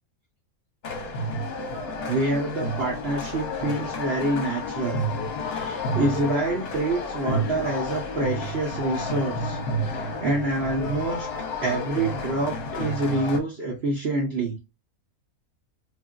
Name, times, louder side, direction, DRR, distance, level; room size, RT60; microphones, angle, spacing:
sound 1, 0.8-13.4, left 1 dB, 50° left, 0.9 m, -30 dB
voice 1, 2.1-5.0 5.4-11.3 11.6-14.6, right 2 dB, 55° right, 0.8 m, -27 dB
3.0 x 2.5 x 2.4 m
omnidirectional pair, 1.5 m